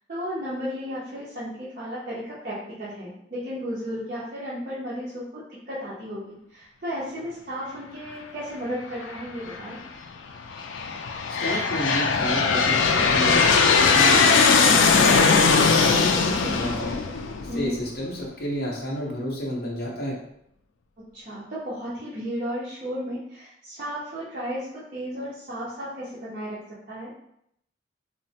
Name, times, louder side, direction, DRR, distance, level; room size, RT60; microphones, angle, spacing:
voice 1, 0.1-9.8 17.5-17.8 21.0-26.6 26.9-27.1, equal, 45° right, -9 dB, 0.6 m, -34 dB
Aircraft, 9.0-9.6 10.3-17.9, left 5 dB, 75° left, 0.3 m, -20 dB
voice 2, 11.3-17.0 17.4-20.2, equal, 50° left, -3 dB, 0.7 m, -31 dB
3.1 x 2.0 x 2.7 m, 0.75 s
head